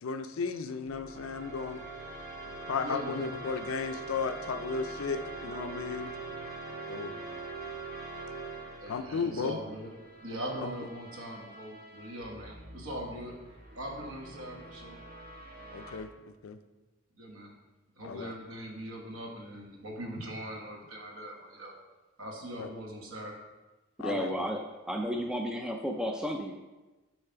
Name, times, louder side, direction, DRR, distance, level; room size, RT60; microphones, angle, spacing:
voice 1, 0.0-1.8 2.7-6.1 6.9-7.1 8.9-9.6 10.6-10.7 15.7-16.1 16.4-16.6 18.0-18.3 22.6-22.7 24.0-24.5, left 5 dB, 65° left, 10 dB, 0.4 m, -34 dB
sound 1, 0.9-16.0, right 3 dB, 45° right, 1.2 m, -44 dB
voice 2, 2.8-3.3 8.8-9.9 10.2-13.4 13.7-15.0 17.2-17.5 18.0-21.7 22.2-23.4, equal, 65° right, 0 dB, 1.2 m, -41 dB
voice 3, 24.0-26.6, equal, 5° right, 2 dB, 0.3 m, -33 dB
6.9 x 3.3 x 5.6 m, 1.1 s
head